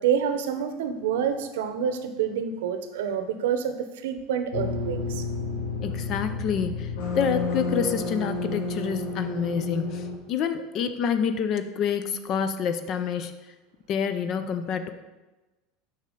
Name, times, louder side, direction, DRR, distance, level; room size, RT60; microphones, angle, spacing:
voice 1, 0.0-5.3, right 8 dB, 85° right, 9 dB, 0.7 m, -27 dB
sound 1, 4.5-10.2, left 3 dB, 80° left, 1.4 m, -30 dB
voice 2, 5.8-13.3 13.9-14.9, left 7 dB, 50° left, 9 dB, 0.5 m, -28 dB
7.1 x 5.6 x 3.8 m, 1.1 s
supercardioid pair, 110°, 0 cm